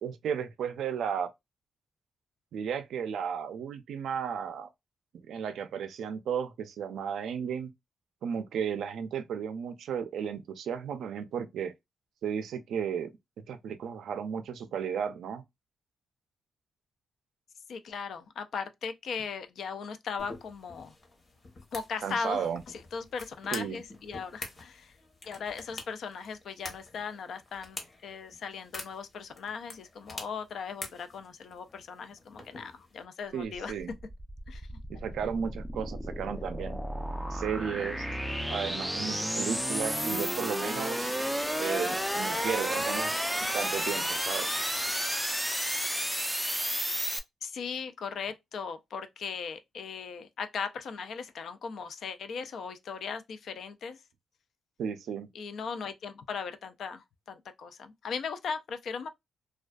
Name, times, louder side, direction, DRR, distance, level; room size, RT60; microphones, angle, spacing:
voice 1, 0.0-1.3 2.5-4.7 5.3-7.7 8.2-11.7 12.2-13.1 13.5-15.4 22.0-22.6 23.5-23.8 33.3-33.9 34.9-36.8 37.3-38.1 38.5-41.2 41.6-44.5 54.8-55.3, right 7 dB, 80° right, 0.4 m, -34 dB
voice 2, 17.7-20.9 21.7-25.0 25.3-33.7 34.5-34.7 47.4-54.0 55.3-59.1, left 6 dB, 70° left, 0.4 m, -38 dB
sound 1, 20.2-33.0, left 2 dB, 35° left, 0.9 m, -47 dB
sound 2, 33.5-47.2, equal, ahead, 0.3 m, -32 dB
2.4 x 2.2 x 2.2 m
cardioid pair, 100°, 0 cm